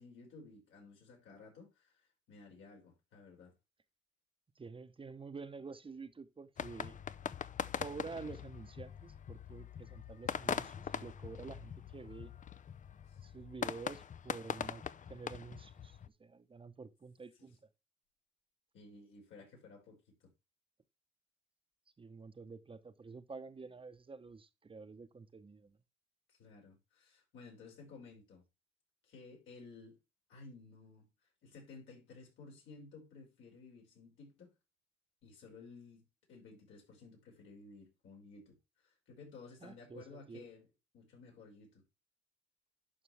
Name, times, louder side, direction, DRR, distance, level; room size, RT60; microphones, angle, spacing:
voice 1, 0.0-3.5 13.1-13.2 17.4-17.5 18.7-20.3 26.3-28.4 29.0-30.0 30.3-31.1 31.4-34.5 35.2-38.6 38.8-40.7 40.9-41.8, left 4 dB, 80° left, 5.9 m, -55 dB
voice 2, 4.6-7.0 7.8-12.3 13.2-14.8 15.1-17.6 22.0-25.8 39.6-40.4, right 4 dB, 25° right, 0.9 m, -49 dB
sound 1, 6.6-16.1, left 8 dB, 40° left, 0.6 m, -42 dB
11.5 x 5.3 x 3.3 m
cardioid pair, 90°, 20 cm